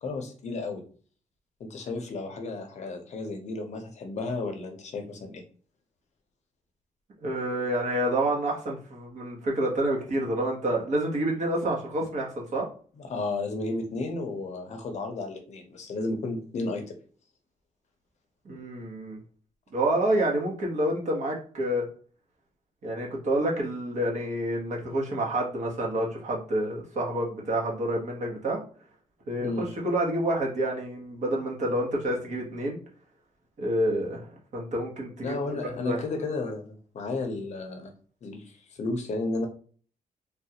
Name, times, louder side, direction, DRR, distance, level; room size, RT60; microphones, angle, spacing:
voice 1, 0.0-0.8 1.6-5.4 13.0-17.0 29.4-29.7 35.2-37.9 38.2-39.5, left 3 dB, 50° left, 4 dB, 0.7 m, -33 dB
voice 2, 7.2-12.7 18.4-19.2 19.7-21.8 22.8-28.6 29.3-32.8 33.6-35.4 35.6-36.0, right 1 dB, 55° right, -1 dB, 1.1 m, -28 dB
3.5 x 2.4 x 2.8 m, 0.42 s
wide cardioid pair, 165°, 15 cm